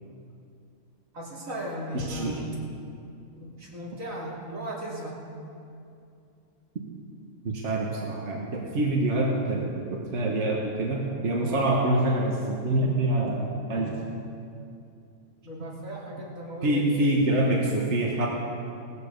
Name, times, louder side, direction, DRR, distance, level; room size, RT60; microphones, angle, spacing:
voice 1, 1.1-2.5 3.4-5.2 15.4-17.5, equal, 85° right, -4 dB, 3.2 m, -37 dB
voice 2, 1.9-2.4 7.4-14.0 16.6-18.3, right 1 dB, 60° right, -2 dB, 1.7 m, -26 dB
17.5 x 14.0 x 5.3 m, 2.5 s
omnidirectional pair, 1.4 m